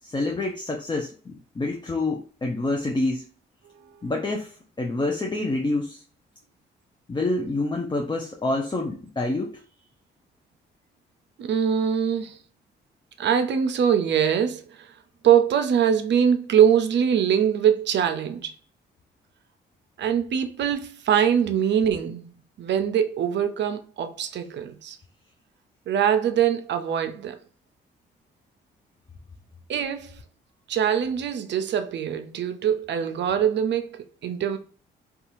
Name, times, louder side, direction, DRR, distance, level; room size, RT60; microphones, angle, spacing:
voice 1, 0.0-3.3 4.0-6.0 7.1-9.6, left 2 dB, 20° left, 0.5 m, -27 dB
voice 2, 3.7-4.1 11.4-12.4 13.2-14.9 15.2-18.6 20.0-25.0 25.9-27.4 29.7-30.2 30.7-34.6, right 8 dB, 60° right, 0.5 m, -23 dB
2.7 x 2.4 x 2.6 m
supercardioid pair, 55°, 21 cm